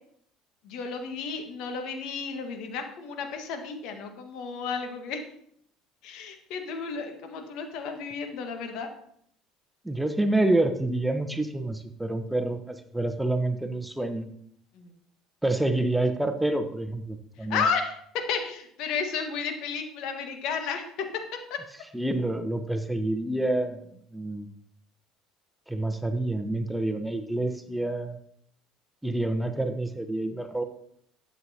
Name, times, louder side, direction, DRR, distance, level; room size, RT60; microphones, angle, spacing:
voice 1, 0.6-5.2 6.0-8.9 14.7-14.9 17.5-18.0 18.3-20.8 21.5-21.6, left 5 dB, 60° left, 5 dB, 1.6 m, -32 dB
voice 2, 9.8-14.3 15.4-17.6 21.9-23.9 24.1-24.5 25.7-28.2 29.0-30.6, right 2 dB, 5° right, 8 dB, 1.0 m, -28 dB
12.0 x 8.1 x 2.9 m, 0.68 s
hypercardioid pair, 60°, 0 cm